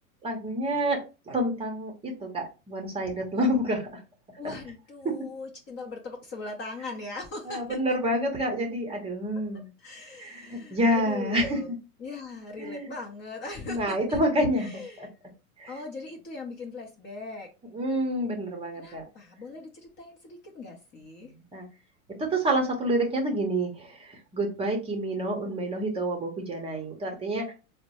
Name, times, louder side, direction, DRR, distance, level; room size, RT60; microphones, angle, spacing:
voice 1, 0.2-3.9 4.4-4.6 5.0-5.1 7.5-9.7 10.2-11.6 12.6-12.9 13.7-14.7 15.0-15.1 15.6-15.7 17.7-19.0 21.3-21.7 22.2-27.5, right 1 dB, 15° right, 2 dB, 0.7 m, -28 dB
voice 2, 4.4-7.8 9.8-11.7 12.0-14.2 14.6-15.1 15.7-17.5 18.7-21.3, left 3 dB, 25° left, 2 dB, 0.7 m, -40 dB
4.2 x 2.1 x 2.9 m, 0.30 s
hypercardioid pair, 100°, 45 cm